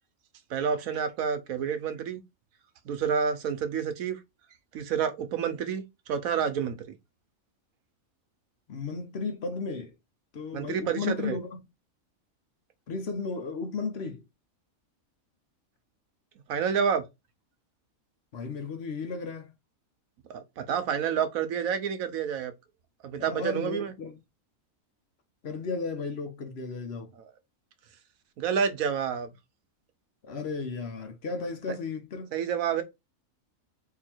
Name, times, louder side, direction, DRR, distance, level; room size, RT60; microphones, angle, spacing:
voice 1, 0.5-2.2 2.8-4.2 4.7-5.8 6.1-6.8 10.5-11.4 16.5-17.0 20.3-22.5 23.0-23.9 27.2-27.3 28.4-29.3 31.7-31.8 32.3-32.8, right 7 dB, 85° right, 1.2 m, -29 dB
voice 2, 8.7-9.9 10.3-11.6 12.9-14.2 18.3-19.5 23.2-24.2 25.4-27.1 30.2-32.3, left 4 dB, 55° left, 1.0 m, -34 dB
3.8 x 2.7 x 4.3 m
omnidirectional pair, 1.4 m